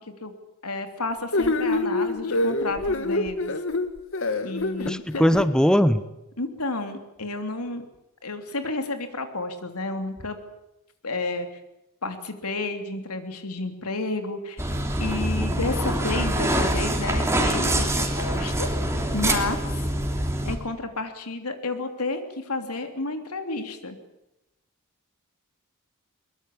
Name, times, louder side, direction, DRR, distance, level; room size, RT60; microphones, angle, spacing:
voice 1, 0.6-3.5 4.4-5.3 6.4-7.8 8.2-10.4 11.0-11.5 12.0-14.6 15.0-18.7 19.1-19.9 20.4-24.0, left 2 dB, 90° left, 7 dB, 3.1 m, -31 dB
sound 1, 1.3-5.5, left 2 dB, 60° left, 1.9 m, -25 dB
voice 2, 4.8-6.0, equal, 5° left, 13 dB, 0.9 m, -20 dB
sound 2, 14.6-20.6, right 1 dB, 15° right, 3.1 m, -25 dB
22.5 x 22.0 x 8.5 m, 0.91 s
head